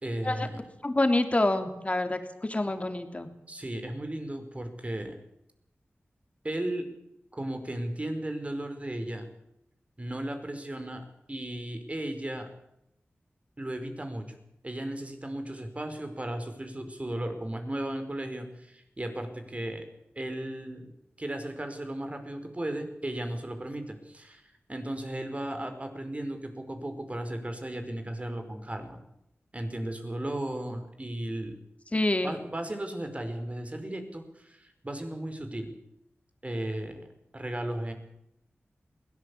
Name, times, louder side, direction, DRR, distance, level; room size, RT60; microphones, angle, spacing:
voice 1, 0.0-0.6 3.5-5.2 6.4-6.9 7.3-9.2 10.0-12.5 13.6-14.2 14.6-19.8 20.1-20.9 21.2-24.4 24.7-29.0 29.5-31.6 32.2-35.7 36.4-37.1 37.3-37.9, right 1 dB, 30° right, 7 dB, 5.0 m, -35 dB
voice 2, 0.8-3.3 31.9-32.4, left 2 dB, 30° left, 7 dB, 3.3 m, -27 dB
21.5 x 18.0 x 8.7 m, 0.82 s
cardioid pair, 55°, 4 cm